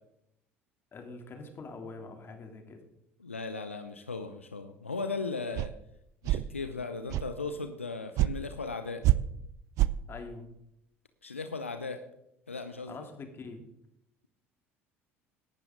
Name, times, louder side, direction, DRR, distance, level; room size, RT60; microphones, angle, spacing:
voice 1, 0.9-2.8 10.1-10.5 12.9-13.6, left 3 dB, 35° left, 4 dB, 3.0 m, -44 dB
voice 2, 3.2-5.7 6.2-9.0 11.2-12.0 12.5-13.0, left 4 dB, 85° left, 9 dB, 0.7 m, -37 dB
sound 1, 5.6-5.7 6.2-6.5 7.1-7.3 8.2-8.3 9.0-9.2 9.8-9.9, right 16 dB, 55° right, 0.5 m, -25 dB
18.0 x 11.5 x 3.9 m, 0.80 s
figure-of-eight pair, 60°, 7 cm